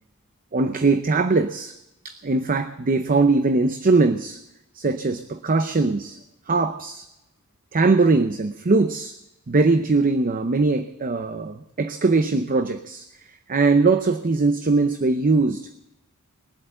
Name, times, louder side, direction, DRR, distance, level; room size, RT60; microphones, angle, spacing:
voice 1, 0.5-1.8 2.0-4.4 4.8-6.2 6.5-7.1 7.7-9.1 9.5-13.1 13.5-15.7, right 3 dB, 40° right, 9 dB, 0.6 m, -21 dB
21.0 x 8.1 x 7.6 m, 0.89 s
head